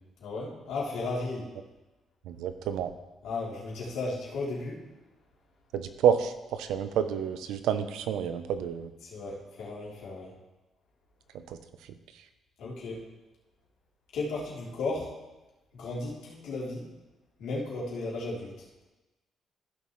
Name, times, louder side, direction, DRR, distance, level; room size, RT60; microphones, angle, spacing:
voice 1, 0.2-1.5 3.2-4.8 9.0-10.3 12.6-13.0 14.1-15.1 15.7-16.8 17.4-18.9, left 3 dB, 85° left, -6 dB, 3.3 m, -35 dB
voice 2, 2.3-2.9 5.7-8.9 11.5-11.6, right 8 dB, 90° right, 10 dB, 0.7 m, -29 dB
15.0 x 6.9 x 3.2 m, 1.1 s
cardioid pair, 90°, 0 cm